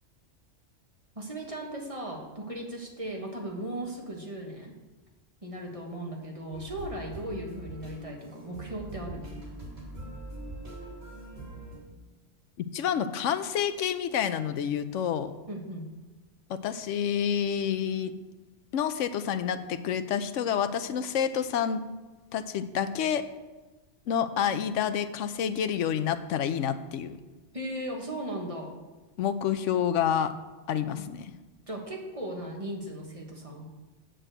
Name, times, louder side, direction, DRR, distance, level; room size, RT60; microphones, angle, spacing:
voice 1, 1.1-4.7 5.4-9.3 15.5-15.9 27.5-28.7 31.7-33.7, right 1 dB, 30° right, 0 dB, 1.6 m, -37 dB
sound 1, 6.5-11.8, right 1 dB, 55° right, 3.5 m, -42 dB
voice 2, 12.6-15.3 16.5-18.1 18.7-21.8 22.3-23.2 24.1-27.2 29.2-30.3 30.7-31.3, left 8 dB, 90° left, 11 dB, 1.0 m, -28 dB
7.8 x 6.5 x 7.8 m, 1.2 s
omnidirectional pair, 1.2 m